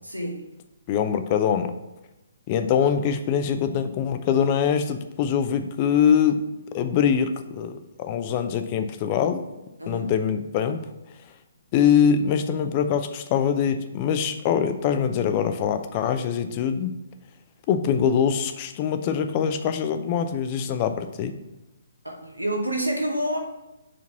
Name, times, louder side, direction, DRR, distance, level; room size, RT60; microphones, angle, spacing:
voice 1, 0.0-0.4 9.8-10.1 22.0-23.4, right 1 dB, 90° right, 2 dB, 1.1 m, -28 dB
voice 2, 0.9-1.7 2.5-6.4 6.7-9.4 9.9-10.8 11.7-17.0 17.7-21.3, left 8 dB, 30° left, 8 dB, 0.5 m, -23 dB
5.1 x 4.0 x 5.8 m, 0.95 s
figure-of-eight pair, 130°, 0 cm